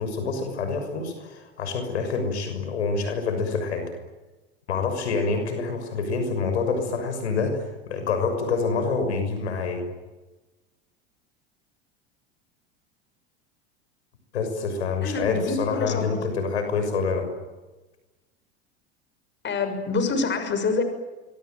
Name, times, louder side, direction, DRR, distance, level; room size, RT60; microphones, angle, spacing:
voice 1, 0.0-3.9 4.7-9.9 14.3-17.3, left 4 dB, 85° left, 7 dB, 6.5 m, -27 dB
voice 2, 15.0-16.2 19.4-20.8, left 4 dB, 35° left, 8 dB, 6.6 m, -26 dB
26.0 x 23.0 x 9.3 m, 1.2 s
hypercardioid pair, 90°, 32 cm